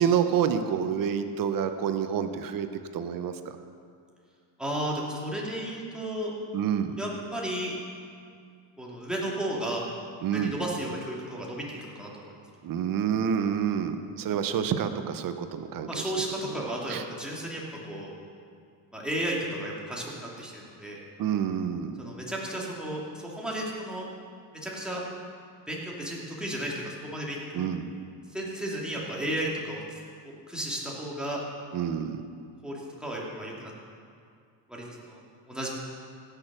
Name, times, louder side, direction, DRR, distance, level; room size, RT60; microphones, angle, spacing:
voice 1, 0.0-2.7 2.9-3.3 6.5-7.0 10.2-10.6 12.6-16.1 16.4-16.6 16.9-17.0 21.2-22.0 27.5-27.8 31.7-32.2, right 8 dB, 45° right, 9 dB, 0.9 m, -28 dB
voice 2, 4.6-6.3 7.0-7.7 8.8-9.8 10.3-12.3 15.9-17.6 17.9-18.1 18.9-21.0 22.0-24.0 24.6-25.0 25.7-27.7 28.3-29.8 30.2-31.4 32.6-33.7 34.7-35.2 35.5-35.7, right 1 dB, ahead, -4 dB, 2.6 m, -33 dB
16.0 x 6.8 x 6.2 m, 2.3 s
supercardioid pair, 115°, 49 cm